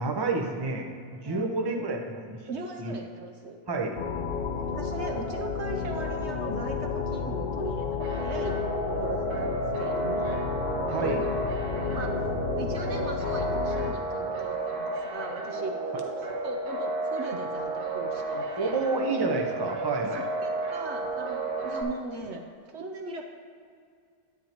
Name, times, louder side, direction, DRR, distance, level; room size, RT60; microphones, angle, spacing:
voice 1, 0.0-2.4 2.8-2.9 3.7-4.0 10.9-11.2 18.6-20.2, right 3 dB, 35° right, 2 dB, 0.4 m, -29 dB
voice 2, 2.5-3.6 4.7-8.5 8.9-10.5 11.0-11.3 11.9-12.1 12.6-18.9 20.1-22.4 22.7-23.3, right 3 dB, 60° right, 3 dB, 0.8 m, -39 dB
sound 1, 4.0-13.9, left 5 dB, 85° left, 0.4 m, -31 dB
sound 2, 8.0-21.8, right 2 dB, 80° right, 1.6 m, -32 dB
9.8 x 9.1 x 2.9 m, 2.2 s
omnidirectional pair, 1.6 m